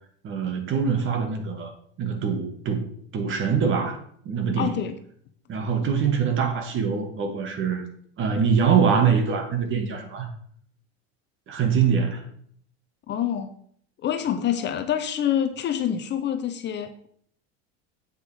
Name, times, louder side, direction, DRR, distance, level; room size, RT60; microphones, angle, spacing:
voice 1, 0.2-1.7 2.0-2.8 3.1-4.0 4.3-4.8 5.5-7.8 8.2-10.3 11.5-12.2, right 6 dB, 40° right, 5 dB, 2.0 m, -23 dB
voice 2, 4.6-5.0 13.1-13.5 14.0-17.1, left 9 dB, 35° left, 8 dB, 0.8 m, -26 dB
8.1 x 6.1 x 5.0 m, 0.62 s
supercardioid pair, 120°, 32 cm